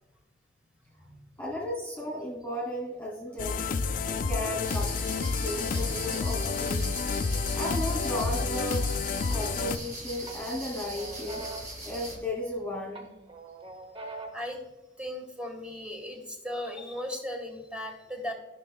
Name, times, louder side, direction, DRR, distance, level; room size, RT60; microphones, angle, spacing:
voice 1, 0.9-1.2 14.3-14.6 15.0-18.3, left 1 dB, 5° right, 2 dB, 1.6 m, -37 dB
voice 2, 1.4-3.6 4.1-7.0 7.5-8.8 9.3-11.4 11.8-13.1, left 1 dB, 10° left, -5 dB, 2.5 m, -35 dB
sound 1, 3.4-9.8, left 4 dB, 45° left, 0.4 m, -29 dB
sound 2, 4.6-12.2, right 1 dB, 45° right, 2.4 m, -41 dB
sound 3, 9.3-9.9 10.3-12.6 12.9-14.6, right 2 dB, 30° right, 0.9 m, -43 dB
13.5 x 6.1 x 2.3 m, 1.1 s
head